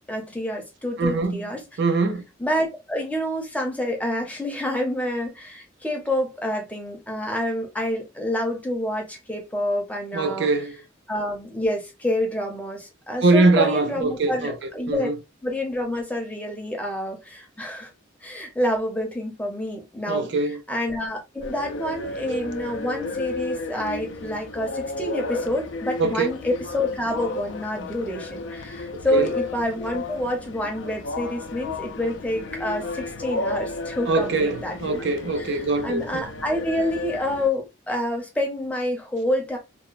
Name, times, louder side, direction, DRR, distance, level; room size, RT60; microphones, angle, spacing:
voice 1, 0.1-1.6 2.4-10.5 11.1-15.1 15.4-17.9 18.2-20.3 20.7-35.0 35.4-39.6, left 1 dB, 5° left, 0.6 m, -28 dB
voice 2, 1.0-1.4 1.8-2.2 10.1-10.8 13.2-14.5 14.9-15.1 20.1-20.6 26.0-26.3 29.1-29.3 34.1-36.2, right 3 dB, 60° right, 0.4 m, -22 dB
sound 1, 21.4-37.5, left 2 dB, 65° left, 0.4 m, -33 dB
2.9 x 2.1 x 2.4 m
head